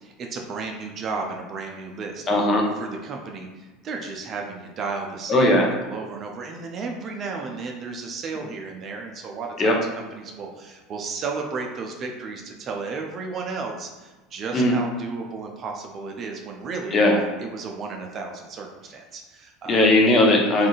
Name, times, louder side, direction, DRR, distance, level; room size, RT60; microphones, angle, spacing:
voice 1, 0.0-2.3 2.8-17.0 17.4-19.9, right 4 dB, 40° right, 1 dB, 0.4 m, -33 dB
voice 2, 2.3-2.7 5.3-5.7 9.6-9.7 14.5-14.7 16.9-17.2 19.7-20.7, left 1 dB, 30° left, 0 dB, 0.7 m, -18 dB
3.6 x 2.4 x 2.4 m, 1.2 s
figure-of-eight pair, 75°, 0 cm